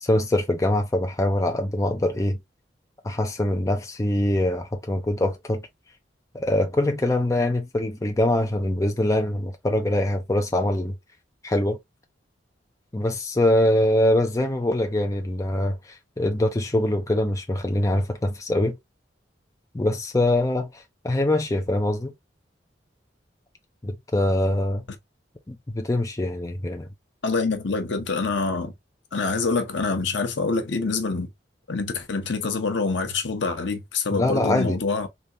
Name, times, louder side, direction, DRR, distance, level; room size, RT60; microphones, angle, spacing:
voice 1, 0.0-2.4 3.0-5.6 6.3-10.9 11.4-11.8 12.9-18.8 19.7-22.1 23.8-24.8 25.5-26.9 34.1-34.8, left 1 dB, 15° left, 0.5 m, -23 dB
voice 2, 27.2-28.7 29.1-31.3 31.7-35.1, left 4 dB, 75° left, 0.8 m, -26 dB
3.4 x 2.8 x 2.6 m
head